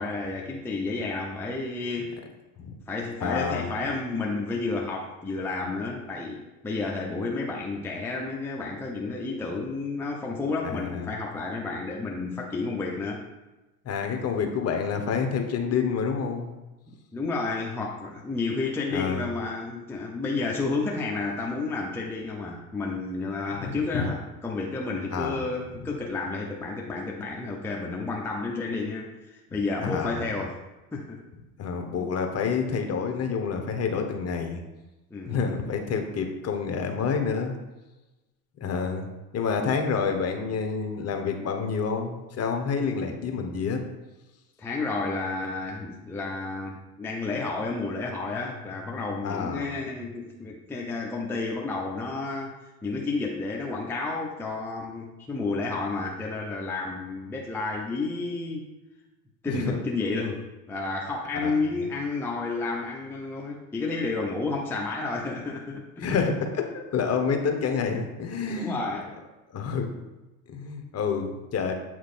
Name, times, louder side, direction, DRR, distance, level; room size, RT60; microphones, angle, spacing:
voice 1, 0.0-2.2 2.9-13.2 17.1-30.6 30.9-31.2 35.1-35.5 39.6-39.7 44.6-52.5 52.8-58.7 59.4-66.0 68.5-69.1, left 3 dB, 5° left, -2 dB, 0.6 m, -31 dB
voice 2, 3.2-3.7 10.6-11.1 13.8-16.5 18.9-19.3 23.6-24.1 25.1-25.4 29.8-30.2 31.6-34.6 35.3-37.5 38.6-39.1 39.3-43.8 49.2-49.7 59.5-59.7 61.4-61.5 66.0-68.8 69.5-69.9 70.5-71.7, left 5 dB, 30° left, 4 dB, 1.0 m, -28 dB
8.0 x 3.1 x 4.2 m, 1.1 s
supercardioid pair, 100°, 46 cm